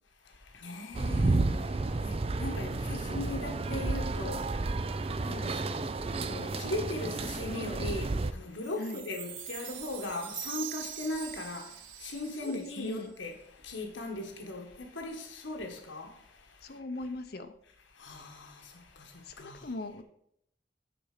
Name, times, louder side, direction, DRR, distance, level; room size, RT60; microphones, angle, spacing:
voice 1, 0.2-16.8 17.9-19.7, left 2 dB, 85° left, 1.4 m, -39 dB
sound 1, 0.9-8.3, right 3 dB, 30° right, 0.4 m, -31 dB
Chime, 8.6-13.1, right 10 dB, 90° right, 1.0 m, -43 dB
voice 2, 12.4-13.1 16.6-17.5 19.3-20.0, left 2 dB, 55° left, 0.7 m, -39 dB
10.0 x 4.4 x 6.6 m
head